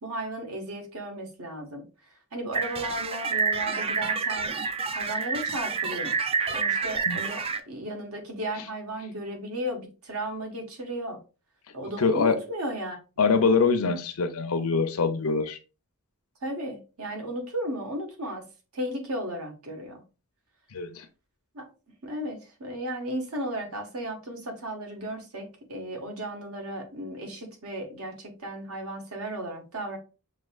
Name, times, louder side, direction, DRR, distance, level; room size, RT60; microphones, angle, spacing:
voice 1, 0.0-1.8 2.3-4.5 4.9-6.1 6.5-11.2 11.7-13.0 16.4-18.4 18.7-20.0 21.5-21.7 22.0-30.0, right 1 dB, 70° right, 1.3 m, -35 dB
sound 1, 2.5-7.6, right 5 dB, 25° right, 0.3 m, -28 dB
voice 2, 12.0-12.4 13.2-15.6 20.7-21.0, left 4 dB, 70° left, 0.6 m, -24 dB
6.3 x 2.8 x 2.3 m
head